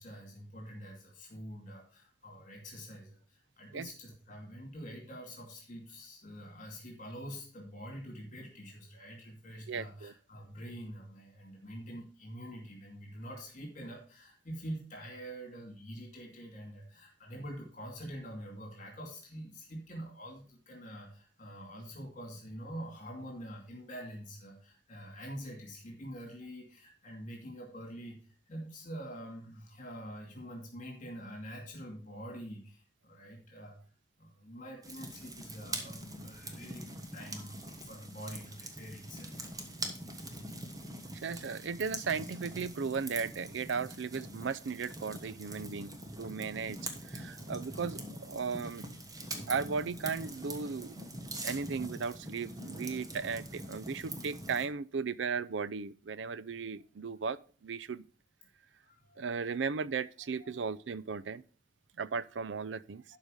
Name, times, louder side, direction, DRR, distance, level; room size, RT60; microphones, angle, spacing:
voice 1, 0.0-33.8 34.2-39.6 40.5-40.7 58.8-59.6 60.4-60.8, equal, 45° left, 2.5 m, -46 dB
voice 2, 9.7-10.1 41.1-46.8 47.1-49.0 49.5-51.0 51.4-58.0 59.2-61.4 62.0-63.0, right 5 dB, 90° right, 0.5 m, -36 dB
sound 1, 34.8-54.7, right 1 dB, 20° right, 1.3 m, -43 dB
12.0 x 4.9 x 5.0 m
head